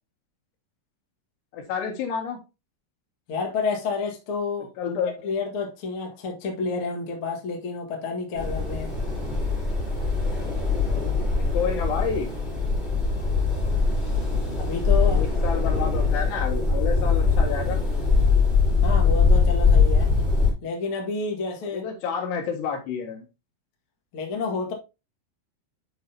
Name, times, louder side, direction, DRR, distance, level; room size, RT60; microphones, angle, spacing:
voice 1, 1.5-2.4 4.8-5.1 11.5-12.3 15.1-17.8 21.7-23.2, left 6 dB, 65° left, 3.5 m, -29 dB
voice 2, 3.3-5.0 5.2-8.9 14.6-15.2 18.8-20.1 20.6-21.8 24.1-24.7, left 4 dB, 85° left, 1.2 m, -29 dB
sound 1, 8.4-20.5, left 4 dB, ahead, 3.2 m, -22 dB
9.2 x 5.3 x 2.8 m
omnidirectional pair, 5.6 m